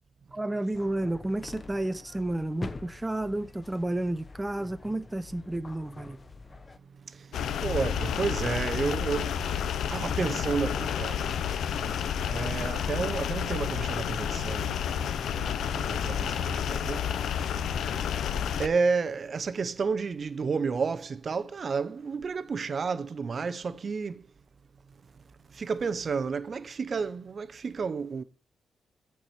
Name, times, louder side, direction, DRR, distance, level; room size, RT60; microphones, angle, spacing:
voice 1, 0.3-6.2, right 1 dB, 15° right, 0.6 m, -31 dB
sound 1, 0.7-6.8, left 3 dB, 30° left, 0.9 m, -45 dB
voice 2, 7.0-24.2 25.5-28.2, right 5 dB, 50° right, 0.7 m, -32 dB
sound 2, 7.3-18.7, left 8 dB, 85° left, 0.7 m, -30 dB
14.0 x 4.7 x 4.3 m
cardioid pair, 85°, 0 cm